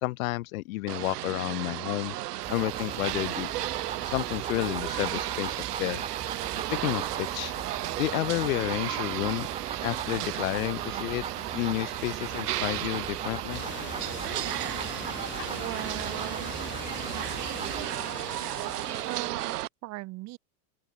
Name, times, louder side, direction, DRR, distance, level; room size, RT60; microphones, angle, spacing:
voice 1, 0.0-2.1 2.5-3.5 4.1-6.0 6.7-7.5 8.0-9.5 9.8-11.2 11.5-13.6, left 19 dB, 60° left, 2.4 m, -31 dB
sound 1, 0.9-19.7, right 14 dB, 85° right, 5.1 m, -34 dB
sound 2, 2.4-17.8, right 6 dB, 15° right, 2.6 m, -40 dB
sound 3, 13.5-19.3, left 12 dB, 25° left, 3.2 m, -42 dB
voice 2, 15.5-16.5 17.1-17.9 19.0-20.4, right 21 dB, 35° right, 3.9 m, -39 dB
open air
supercardioid pair, 165°, 46 cm